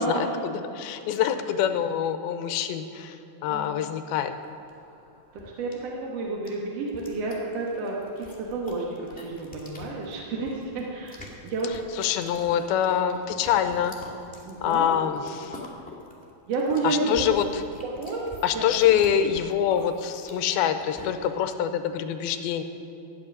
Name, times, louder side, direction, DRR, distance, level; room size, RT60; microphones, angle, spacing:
voice 1, 0.0-3.2 3.4-4.3 11.7-14.0 14.6-15.6 16.8-17.6 18.4-22.6, left 9 dB, 80° left, 8 dB, 2.4 m, -25 dB
voice 2, 3.5-3.9 5.3-11.7 14.5-15.1 16.5-17.3 17.8-18.3 18.5-18.7, right 3 dB, 60° right, -2 dB, 1.7 m, -30 dB
sound 1, 4.4-21.4, left 2 dB, 5° left, 0.9 m, -46 dB
13.5 x 7.5 x 9.9 m, 2.9 s
omnidirectional pair, 4.8 m